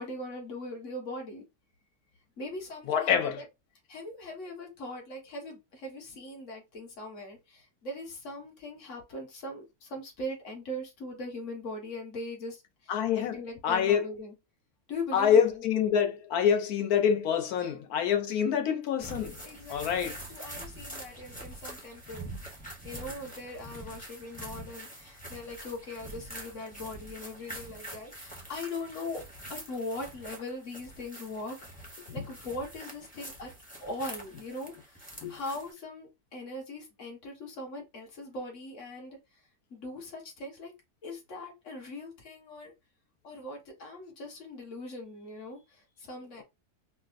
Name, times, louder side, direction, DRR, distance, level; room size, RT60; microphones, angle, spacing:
voice 1, 0.0-1.4 2.4-3.5 3.9-14.3 14.9-15.9 17.6-17.7 19.4-22.3 22.8-29.2 29.5-33.5 33.8-39.4 39.7-40.7 41.0-42.7 43.2-46.4, left 1 dB, 55° left, 1.5 m, -40 dB
voice 2, 2.9-3.4 12.9-13.4 13.6-14.0 15.1-19.4 19.7-20.2 35.2-35.4, left 8 dB, 80° left, 1.2 m, -26 dB
sound 1, 19.0-35.7, right 1 dB, 10° left, 0.5 m, -45 dB
4.8 x 2.0 x 2.5 m
omnidirectional pair, 1.6 m